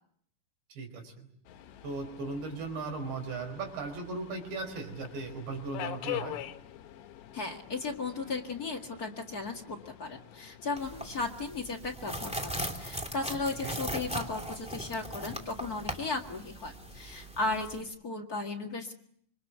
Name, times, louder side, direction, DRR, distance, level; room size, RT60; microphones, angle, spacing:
voice 1, 0.7-1.3 1.8-6.4 13.6-13.8, right 3 dB, 85° right, 6 dB, 6.9 m, -37 dB
Subway metro underground, 1.5-11.3, left 13 dB, 80° left, 3.5 m, -44 dB
voice 2, 7.3-18.9, left 3 dB, 40° left, 2 dB, 1.2 m, -36 dB
sound 1, 10.8-17.8, right 1 dB, ahead, 1.7 m, -39 dB
26.5 x 25.0 x 8.0 m, 0.66 s
omnidirectional pair, 4.9 m